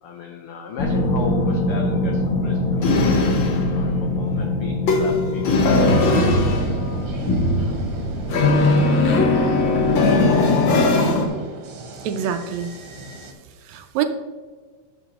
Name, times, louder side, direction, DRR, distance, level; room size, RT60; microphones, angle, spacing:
voice 1, 0.0-6.0, left 5 dB, 85° left, 3 dB, 1.2 m, -35 dB
sound 1, 0.8-11.3, left 2 dB, 65° left, 1.2 m, -19 dB
sound 2, 6.3-13.3, right 2 dB, 55° right, 1.7 m, -36 dB
voice 2, 12.0-12.8 13.6-14.1, right 9 dB, 80° right, 8 dB, 1.8 m, -25 dB
11.0 x 6.7 x 3.0 m, 1.5 s
omnidirectional pair, 3.4 m